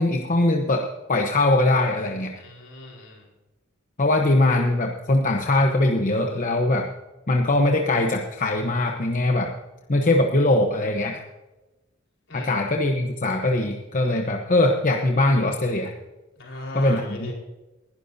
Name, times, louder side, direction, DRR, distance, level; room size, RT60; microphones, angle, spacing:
voice 1, 0.0-2.3 4.0-6.9 7.3-9.5 9.9-11.2 12.3-15.9 16.7-17.3, left 2 dB, 40° left, 3 dB, 1.0 m, -21 dB
voice 2, 2.4-3.3 12.3-12.6 16.4-17.3, left 1 dB, 70° left, -1 dB, 4.6 m, -38 dB
20.5 x 12.0 x 2.7 m, 1.1 s
head